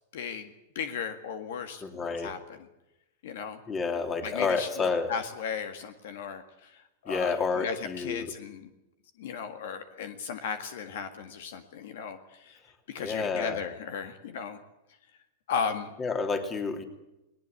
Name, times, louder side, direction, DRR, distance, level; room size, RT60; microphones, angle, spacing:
voice 1, 0.1-0.5 0.8-2.4 3.2-3.6 4.2-8.7 9.2-12.6 12.9-14.6 15.5-15.9, left 7 dB, 70° left, 9 dB, 1.9 m, -36 dB
voice 2, 1.8-2.3 3.7-5.1 7.1-8.3 13.0-13.6 16.0-16.8, left 4 dB, 25° left, 6 dB, 3.3 m, -29 dB
19.5 x 19.0 x 8.4 m, 0.92 s
hypercardioid pair, 115°, 0 cm